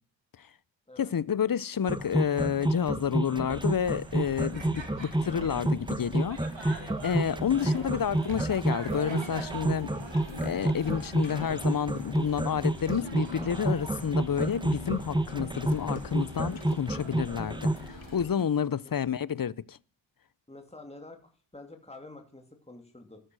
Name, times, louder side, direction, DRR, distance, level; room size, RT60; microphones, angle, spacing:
voice 1, 1.0-9.9 10.4-19.8, left 8 dB, 50° left, 0.7 m, -30 dB
sound 1, 1.9-17.9, right 1 dB, 10° right, 1.2 m, -29 dB
sound 2, 3.5-18.2, right 3 dB, 75° right, 3.2 m, -44 dB
sound 3, 6.8-18.5, left 6 dB, 90° left, 1.1 m, -47 dB
voice 2, 20.5-23.2, left 2 dB, 15° left, 2.6 m, -49 dB
13.0 x 12.5 x 6.2 m
wide cardioid pair, 60°, 46 cm